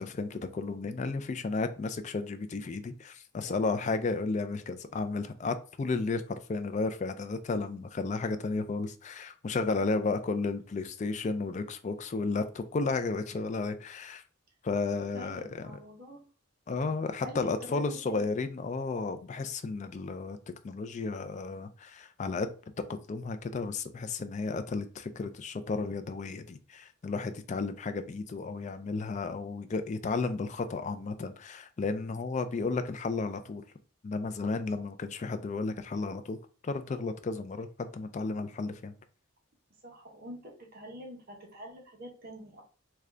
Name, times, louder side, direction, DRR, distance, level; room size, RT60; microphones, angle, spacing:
voice 1, 0.0-14.2 14.6-15.8 16.7-20.4 20.6-22.5 22.9-33.6 34.0-36.4 36.6-38.9, left 3 dB, 35° left, 9 dB, 0.3 m, -33 dB
voice 2, 3.4-3.8 9.8-10.1 15.1-16.2 17.2-18.2 39.8-42.6, equal, 45° right, 1 dB, 0.8 m, -46 dB
3.7 x 2.3 x 3.2 m, 0.39 s
head